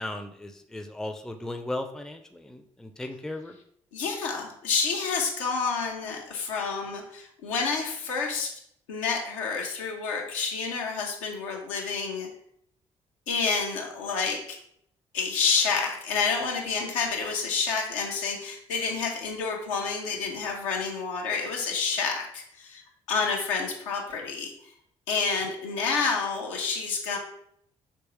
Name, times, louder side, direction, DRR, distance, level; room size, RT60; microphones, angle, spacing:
voice 1, 0.0-3.5, left 1 dB, 5° left, 6 dB, 0.4 m, -36 dB
voice 2, 3.9-8.6 8.9-12.3 13.3-14.6 15.1-22.8 23.1-24.5 25.1-27.2, left 5 dB, 80° left, 1 dB, 0.6 m, -29 dB
3.5 x 3.0 x 3.0 m, 0.69 s
hypercardioid pair, 45°, 16 cm